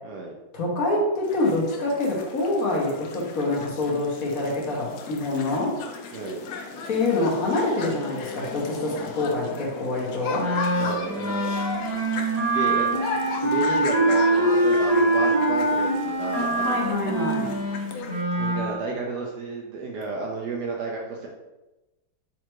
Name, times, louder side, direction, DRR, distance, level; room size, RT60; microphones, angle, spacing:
voice 1, 0.0-0.3 6.1-6.4 10.8-11.5 12.3-13.0 13.4-16.8 18.4-21.3, right 3 dB, 70° right, 0 dB, 1.0 m, -32 dB
voice 2, 0.5-5.7 6.9-10.5 16.6-17.5, left 2 dB, 50° left, -3 dB, 1.3 m, -26 dB
sound 1, 1.2-18.2, left 4 dB, 70° left, 0.9 m, -37 dB
Wind instrument woodwind instrument, 10.3-18.6, right 1 dB, 25° right, 0.9 m, -23 dB
4.3 x 2.5 x 4.5 m, 1.0 s
omnidirectional pair, 2.1 m